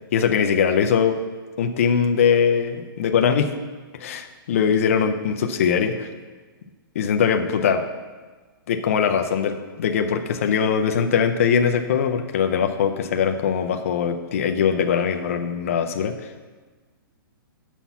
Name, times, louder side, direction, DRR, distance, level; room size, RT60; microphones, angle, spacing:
voice 1, 0.1-1.2 1.6-3.5 3.9-6.1 6.9-7.8 8.7-16.3, left 7 dB, 35° left, 6 dB, 0.4 m, -21 dB
7.1 x 5.7 x 5.8 m, 1.4 s
hypercardioid pair, 180°, 12 cm